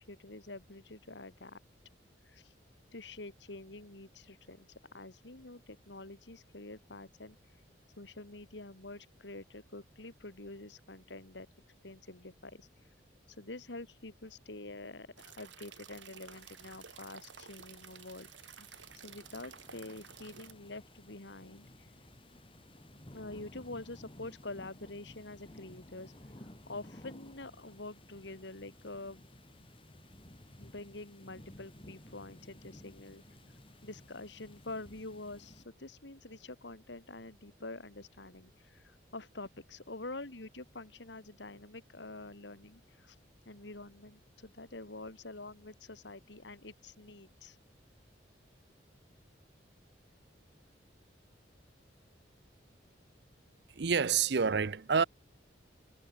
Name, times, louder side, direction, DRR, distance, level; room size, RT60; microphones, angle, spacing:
voice 1, 0.0-1.6 2.3-2.5 2.9-7.4 8.0-11.5 11.8-12.7 13.4-18.3 18.6-18.7 19.0-21.9 23.1-26.1 26.4-29.3 30.6-33.2 33.8-43.2 43.5-47.6, left 2 dB, 75° left, 2.4 m, -47 dB
sound 1, 15.2-20.5, right 8 dB, 85° right, 3.3 m, -53 dB
sound 2, 16.2-35.6, left 1 dB, 30° left, 2.7 m, -56 dB
voice 2, 53.8-55.0, right 6 dB, 65° right, 0.6 m, -28 dB
head